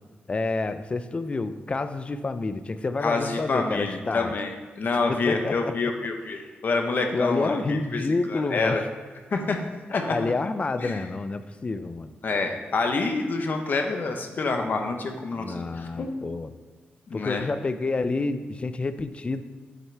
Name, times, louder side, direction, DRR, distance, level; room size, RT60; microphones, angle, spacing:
voice 1, 0.3-4.3 5.3-5.9 6.3-6.5 7.1-8.8 10.1-12.1 15.4-16.5 17.1-19.4, left 3 dB, 30° left, 11 dB, 0.4 m, -28 dB
voice 2, 3.0-4.5 4.8-8.0 8.3-8.8 9.3-9.6 9.9-10.1 10.8-11.0 12.2-16.1 17.1-17.4, left 3 dB, 55° left, 4 dB, 0.9 m, -27 dB
7.8 x 7.4 x 3.3 m, 1.4 s
wide cardioid pair, 110°, 4 cm